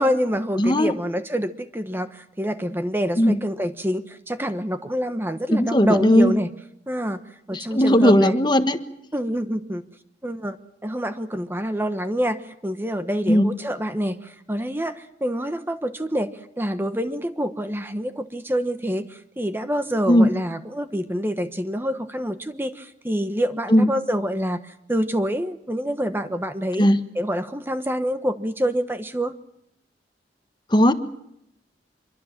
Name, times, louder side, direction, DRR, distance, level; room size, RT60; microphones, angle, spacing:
voice 1, 0.0-6.5 6.9-7.2 7.5-8.4 9.1-9.8 10.2-10.6 10.8-26.9 27.1-29.3, equal, 10° right, 9 dB, 1.1 m, -26 dB
voice 2, 0.6-0.9 3.2-3.4 5.5-6.3 7.5-8.8 13.3-13.5 20.1-20.3 23.7-23.9 26.8-27.0 30.7-30.9, equal, 25° left, 9 dB, 1.4 m, -17 dB
26.0 x 23.5 x 7.5 m, 0.78 s
head